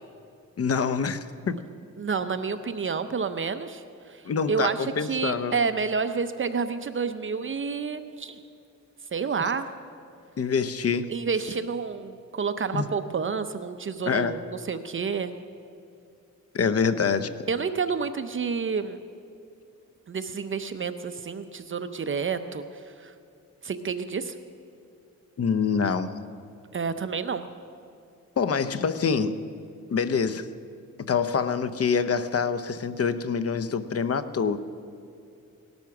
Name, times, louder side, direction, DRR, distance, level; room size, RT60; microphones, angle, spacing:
voice 1, 0.6-1.6 4.2-5.6 10.4-11.1 12.7-12.9 14.1-14.4 16.5-17.3 25.4-26.2 28.4-29.4 29.9-30.5 31.0-34.6, left 6 dB, 45° left, 12 dB, 0.8 m, -26 dB
voice 2, 2.0-8.4 9.1-9.7 11.1-15.3 17.5-19.0 20.1-23.1 23.6-24.3 26.7-27.4, right 5 dB, 40° right, 10 dB, 0.7 m, -29 dB
18.0 x 12.0 x 6.0 m, 2.5 s
cardioid pair, 100°, 32 cm